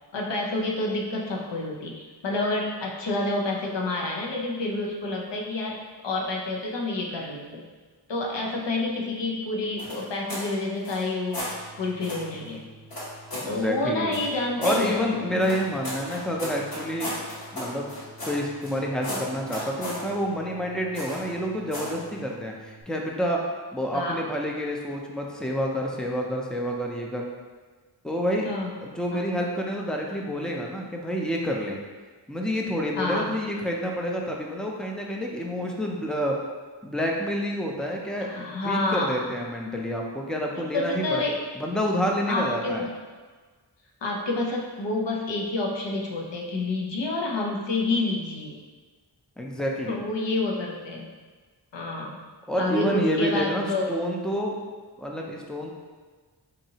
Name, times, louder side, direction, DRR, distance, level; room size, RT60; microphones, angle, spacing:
voice 1, 0.1-7.7 8.1-11.4 11.8-12.7 13.4-15.0 15.3-15.4 19.1-19.2 23.9-24.2 28.4-28.7 29.1-29.2 33.0-33.3 38.2-39.2 40.5-41.4 42.3-42.9 44.0-48.5 49.9-51.1 51.7-52.2 52.6-53.9, left 2 dB, 75° left, -1 dB, 0.7 m, -28 dB
sound 1, 9.8-10.5 10.8-11.6 12.0-12.3 12.9-13.6 14.1-14.8 15.4-18.8 19.0-20.0 20.9-21.3 21.7-22.0, left 1 dB, 55° left, 1.1 m, -34 dB
sound 2, 11.4-22.8, right 2 dB, 30° right, 0.8 m, -51 dB
voice 2, 13.4-14.1 14.6-17.2 17.5-17.9 18.2-23.4 23.7-27.2 28.0-28.5 28.8-31.8 32.3-36.4 36.8-41.2 41.6-42.8 49.4-50.0 52.5-54.6 55.0-55.7, equal, ahead, -1 dB, 0.4 m, -28 dB
4.0 x 2.7 x 2.8 m, 1.4 s
wide cardioid pair, 65°, 43 cm